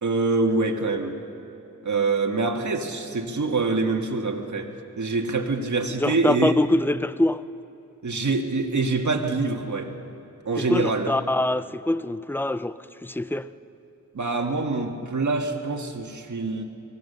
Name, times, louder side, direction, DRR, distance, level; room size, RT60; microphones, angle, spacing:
voice 1, 0.0-1.2 1.8-6.6 8.0-9.9 10.5-11.1 14.1-16.6, right 3 dB, 65° right, 1.8 m, -25 dB
voice 2, 6.0-7.4 10.6-13.5, left 1 dB, 5° left, 0.5 m, -24 dB
24.5 x 18.5 x 6.8 m
wide cardioid pair, 95°, 32 cm